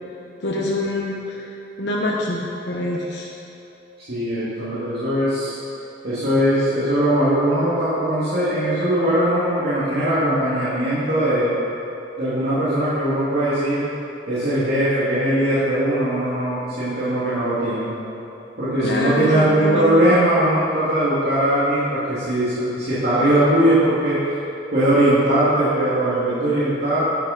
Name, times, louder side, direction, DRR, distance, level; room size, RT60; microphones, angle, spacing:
voice 1, 0.4-1.5 1.8-3.3 18.8-20.2, left 1 dB, 70° left, -4 dB, 1.2 m, -25 dB
voice 2, 4.1-5.6 6.0-11.5 12.2-13.9 14.3-18.0 18.6-24.2 24.7-27.0, right 1 dB, 60° right, -12 dB, 2.6 m, -20 dB
10.5 x 9.9 x 4.4 m, 2.9 s
head